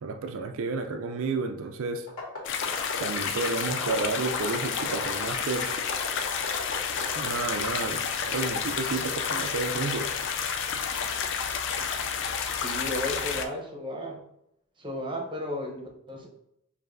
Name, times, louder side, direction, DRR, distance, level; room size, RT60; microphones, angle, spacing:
voice 1, 0.0-2.1 2.7-5.7 7.1-10.1, right 4 dB, 65° right, 6 dB, 0.4 m, -31 dB
sound 1, 2.1-7.6, left 3 dB, 75° left, 1.7 m, -35 dB
sound 2, 2.4-13.4, left 6 dB, 60° left, 0.4 m, -30 dB
voice 2, 12.6-14.2 14.8-16.3, left 1 dB, 25° right, 1 dB, 0.8 m, -34 dB
6.7 x 2.6 x 2.6 m, 0.79 s
head